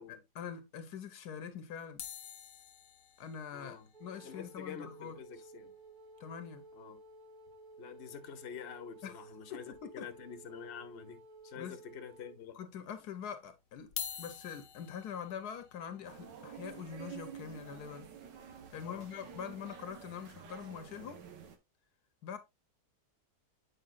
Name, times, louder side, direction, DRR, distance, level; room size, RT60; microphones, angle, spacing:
voice 1, 0.0-2.0 3.2-5.2 6.2-6.6 9.0-9.2 9.5-10.1 11.6-11.8 12.5-13.9 14.2-18.1 18.7-21.2 22.2-22.4, left 7 dB, 70° left, 1.2 m, -44 dB
sound 1, 2.0-6.3 6.6-6.7 6.9-7.1 7.5-7.6 8.9-9.0 9.7-10.3 10.8-10.9 11.7-11.8 13.8-19.9 20.5-20.7, left 8 dB, 90° left, 1.5 m, -49 dB
voice 2, 3.5-3.9 4.2-5.7 6.7-7.0 7.8-12.6 18.8-19.1, left 8 dB, 50° left, 0.9 m, -47 dB
Wind instrument woodwind instrument, 3.9-12.4, right 2 dB, 45° right, 0.6 m, -55 dB
sound 2, 16.0-21.6, right 8 dB, 90° right, 1.6 m, -50 dB
8.0 x 5.0 x 2.4 m
omnidirectional pair, 1.9 m